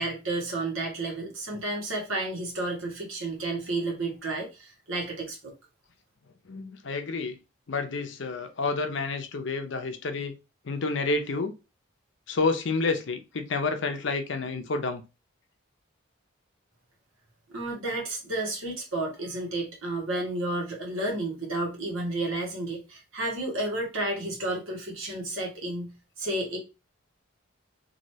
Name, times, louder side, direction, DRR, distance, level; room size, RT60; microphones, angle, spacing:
voice 1, 0.0-5.5 17.5-26.6, right 2 dB, 80° right, 1.4 m, -31 dB
voice 2, 6.4-7.4 7.7-10.4 10.6-11.5 12.3-15.0, left 3 dB, 65° left, 0.6 m, -29 dB
3.1 x 2.7 x 2.7 m
head